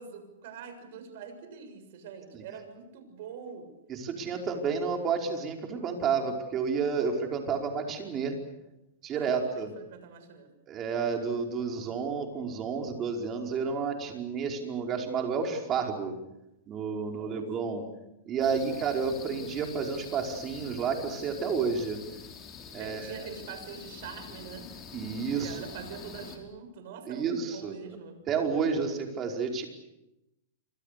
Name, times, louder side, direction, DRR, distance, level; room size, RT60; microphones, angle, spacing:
voice 1, 0.0-3.7 9.1-10.5 17.1-17.4 18.6-18.9 22.8-24.7 25.4-28.2, right 6 dB, 60° right, 8 dB, 6.8 m, -44 dB
voice 2, 3.9-8.4 9.0-9.7 10.7-16.1 16.7-17.8 18.3-22.0 22.7-23.3 24.9-25.6 27.1-27.7 28.3-29.6, right 5 dB, 25° right, 2 dB, 5.0 m, -30 dB
sound 1, 18.4-26.4, left 6 dB, 25° left, 5.5 m, -46 dB
28.5 x 25.0 x 6.9 m, 0.90 s
hypercardioid pair, 145°, 0 cm